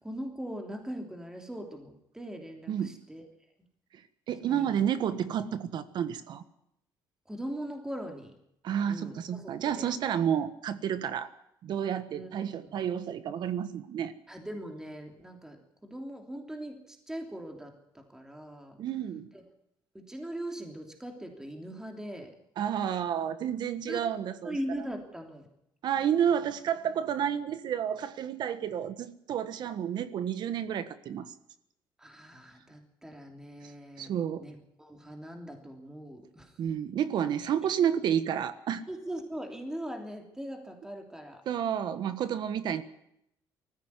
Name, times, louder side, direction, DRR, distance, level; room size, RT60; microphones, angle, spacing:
voice 1, 0.0-3.2 4.5-4.8 7.3-8.3 8.9-9.9 12.1-12.3 14.3-18.8 19.9-22.3 23.5-23.6 23.9-24.0 24.4-25.5 32.0-36.5 38.9-41.4, right 1 dB, 5° right, 3 dB, 3.1 m, -40 dB
voice 2, 2.7-3.0 3.9-4.0 4.3-6.4 8.6-11.3 11.6-14.1 18.8-19.3 22.6-24.6 25.8-31.3 34.0-34.4 36.6-38.8 41.4-42.8, right 9 dB, 60° right, 12 dB, 1.4 m, -30 dB
19.5 x 15.0 x 9.7 m, 0.77 s
cardioid pair, 130°, 9 cm